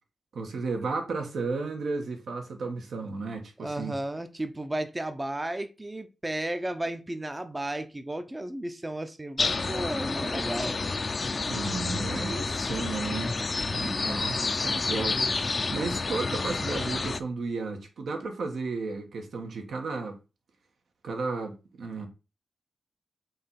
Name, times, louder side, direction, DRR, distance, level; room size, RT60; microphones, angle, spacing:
voice 1, 0.3-3.9 11.5-13.4 13.7-15.4 15.7-20.2 21.0-22.1, right 3 dB, 75° right, 1.5 m, -33 dB
voice 2, 3.6-10.8 14.0-14.4 15.1-15.3, right 1 dB, 15° right, 0.7 m, -34 dB
sound 1, 9.4-17.2, left 3 dB, 35° left, 0.5 m, -29 dB
5.5 x 3.4 x 5.6 m
wide cardioid pair, 115°, 0 cm